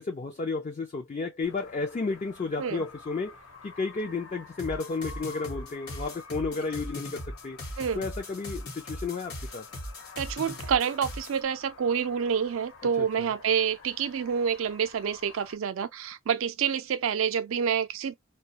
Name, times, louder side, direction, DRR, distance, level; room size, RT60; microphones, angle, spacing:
voice 1, 0.0-3.4 3.6-7.6 7.9-9.7 13.0-13.3, left 4 dB, 35° left, 0.4 m, -32 dB
sound 1, 1.4-15.6, left 4 dB, 85° left, 1.1 m, -49 dB
sound 2, 4.6-11.4, left 1 dB, 50° left, 1.0 m, -39 dB
voice 2, 10.2-18.1, right 7 dB, 75° right, 0.4 m, -28 dB
2.3 x 2.2 x 2.7 m
head